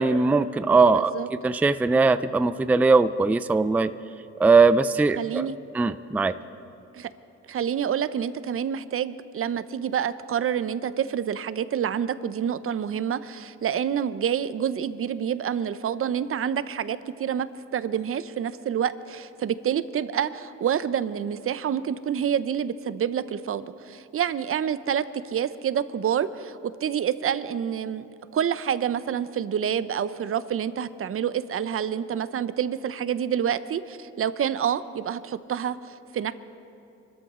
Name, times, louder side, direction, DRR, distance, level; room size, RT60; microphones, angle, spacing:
voice 1, 0.0-1.1 1.4-3.9 4.4-5.5 5.7-6.3, right 4 dB, 5° right, 13 dB, 0.3 m, -20 dB
voice 2, 0.9-1.3 5.2-5.6 6.9-7.1 7.5-28.1 28.3-36.3, right 8 dB, 45° right, 14 dB, 0.7 m, -28 dB
24.5 x 13.5 x 3.7 m, 2.8 s
cardioid pair, 90°, 30 cm